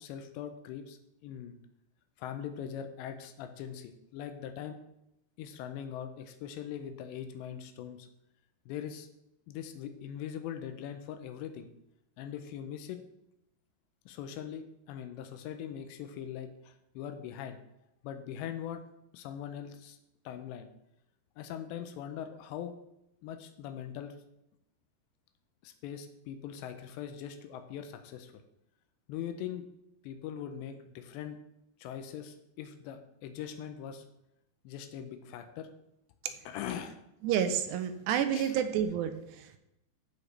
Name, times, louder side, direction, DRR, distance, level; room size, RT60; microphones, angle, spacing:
voice 1, 0.0-1.6 2.2-4.8 5.4-8.1 8.7-9.1 9.5-11.7 12.2-13.0 14.1-17.6 18.0-18.8 19.1-20.0 20.3-20.7 21.4-22.7 23.2-24.2 25.6-28.4 29.1-29.7 30.0-31.4 31.8-34.0 34.6-35.7 36.5-37.0 38.3-38.6, left 9 dB, 90° left, 7 dB, 2.9 m, -41 dB
voice 2, 37.2-39.6, right 9 dB, 80° right, 8 dB, 2.8 m, -30 dB
14.5 x 5.1 x 3.2 m, 0.84 s
omnidirectional pair, 5.0 m